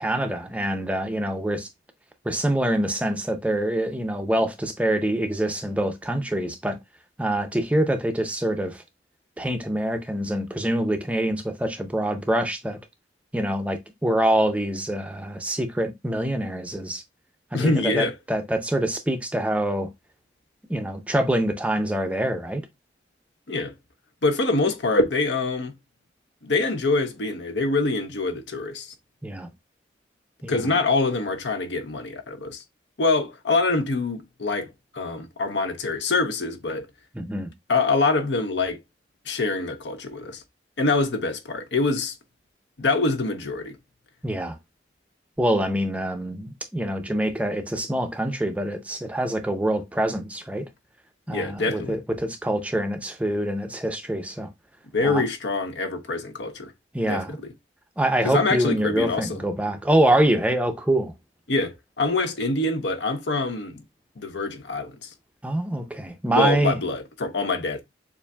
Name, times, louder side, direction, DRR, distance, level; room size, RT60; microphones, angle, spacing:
voice 1, 0.0-1.7 2.3-6.8 7.2-8.8 9.4-12.8 13.3-17.0 17.5-19.9 20.7-22.6 29.2-29.5 30.4-30.5 37.1-37.5 44.2-44.6 45.4-50.7 51.3-54.5 55.0-55.2 56.9-57.4 58.0-61.1 65.4-66.8, right 1 dB, 10° right, 0.5 m, -25 dB
voice 2, 17.5-18.1 23.5-23.7 24.2-25.7 26.4-28.9 30.5-32.6 33.0-34.7 34.9-36.9 37.7-38.8 39.3-40.4 40.8-42.1 42.8-43.8 51.3-52.0 54.9-56.7 57.1-57.2 58.2-59.4 61.5-63.8 64.2-65.1 66.3-67.8, left 3 dB, 80° left, 0.8 m, -25 dB
6.9 x 2.5 x 2.2 m
head